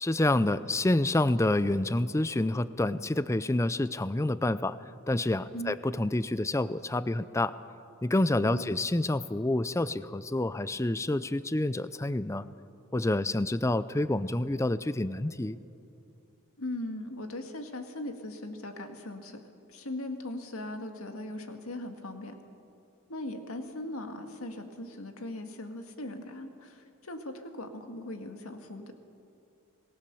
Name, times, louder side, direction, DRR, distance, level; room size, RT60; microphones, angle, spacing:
voice 1, 0.0-4.8 5.1-7.5 8.0-12.4 12.9-15.6, left 2 dB, 15° left, 15 dB, 0.4 m, -28 dB
voice 2, 8.4-8.7 16.6-19.4 19.7-22.4 23.1-28.9, left 1 dB, 85° left, 5 dB, 2.0 m, -39 dB
27.0 x 19.0 x 6.9 m, 2.6 s
head